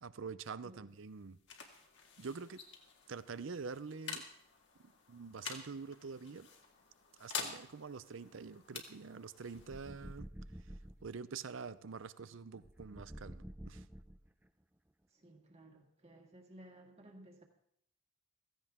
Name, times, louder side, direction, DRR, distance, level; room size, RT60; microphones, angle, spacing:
voice 1, 0.0-1.4 2.2-2.6 3.1-4.2 5.1-6.5 7.2-10.3 11.0-13.8, right 5 dB, 65° right, 15 dB, 0.6 m, -46 dB
sound 1, 0.7-12.1, left 6 dB, 55° left, 1.8 m, -49 dB
sound 2, 9.5-11.1 12.6-14.5, equal, 10° right, 0.5 m, -50 dB
voice 2, 15.2-17.4, right 1 dB, 30° right, 2 dB, 1.8 m, -57 dB
15.5 x 15.5 x 3.6 m, 0.71 s
head